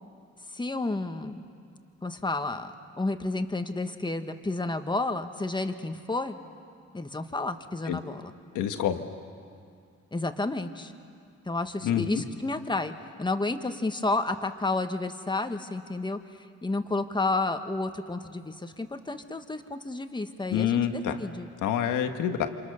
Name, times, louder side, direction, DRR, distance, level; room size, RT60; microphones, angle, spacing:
voice 1, 0.5-1.4 2.0-6.4 6.9-8.3 10.1-10.9 11.4-12.9 13.2-16.2 16.6-21.5, left 2 dB, 15° left, 7 dB, 1.5 m, -31 dB
voice 2, 8.5-9.1 11.8-12.1 20.5-21.2 21.6-22.5, left 9 dB, 90° left, 7 dB, 1.6 m, -27 dB
28.5 x 26.0 x 6.6 m, 2.3 s
cardioid pair, 90°, 30 cm